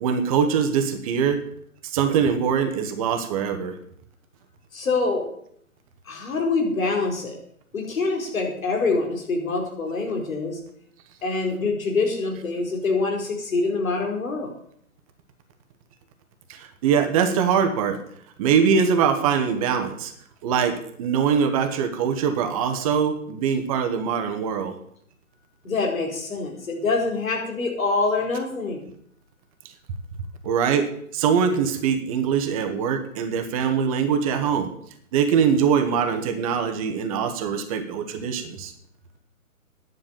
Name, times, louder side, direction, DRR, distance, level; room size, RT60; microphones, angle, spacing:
voice 1, 0.0-1.4 1.8-3.8 16.5-18.0 18.4-20.1 20.4-24.7 30.4-34.7 35.1-38.7, right 7 dB, 25° right, 7 dB, 1.3 m, -23 dB
voice 2, 4.7-5.2 6.1-7.4 7.7-10.6 11.2-14.5 25.6-28.8, left 3 dB, 65° left, 1 dB, 4.7 m, -25 dB
10.5 x 7.3 x 9.1 m, 0.68 s
hypercardioid pair, 145°, 44 cm